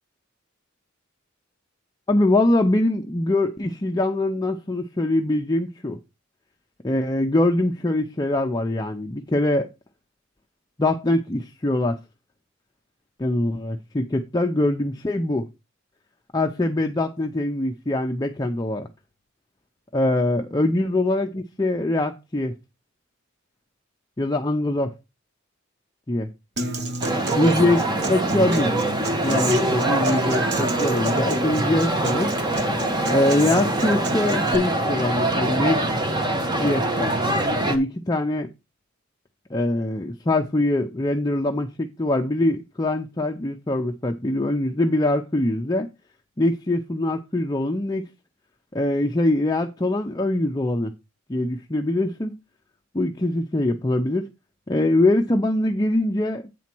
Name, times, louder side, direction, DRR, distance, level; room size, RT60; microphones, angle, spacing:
voice 1, 2.1-6.0 6.8-9.7 10.8-12.0 13.2-15.5 16.3-18.9 19.9-22.5 24.2-24.9 26.1-26.3 27.4-27.8 28.1-28.8 29.2-32.3 33.1-35.8 36.6-37.1 37.7-38.5 39.5-45.9 46.4-48.1 48.7-50.9 51.3-52.3 52.9-54.3 54.7-56.4, left 1 dB, 20° left, 0.6 m, -23 dB
Human voice / Acoustic guitar, 26.6-34.5, right 2 dB, 55° right, 1.0 m, -31 dB
sound 1, 27.0-37.8, right 1 dB, 20° right, 1.1 m, -24 dB
8.4 x 4.2 x 6.0 m
head